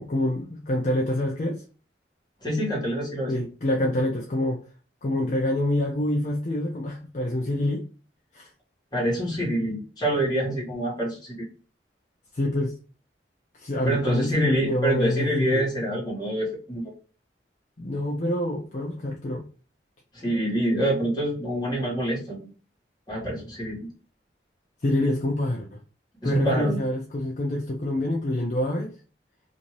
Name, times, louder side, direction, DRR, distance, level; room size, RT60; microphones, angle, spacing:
voice 1, 0.0-1.6 3.3-4.6 5.0-7.8 8.3-8.5 12.3-12.7 13.6-15.6 17.8-19.4 24.8-25.8 26.2-28.9, left 1 dB, 45° left, -1 dB, 0.5 m, -26 dB
voice 2, 2.4-3.4 8.9-11.4 13.8-16.9 20.1-22.5 23.1-23.8 26.2-26.8, right 1 dB, 25° left, -5 dB, 1.5 m, -26 dB
2.7 x 2.6 x 3.0 m, 0.38 s
head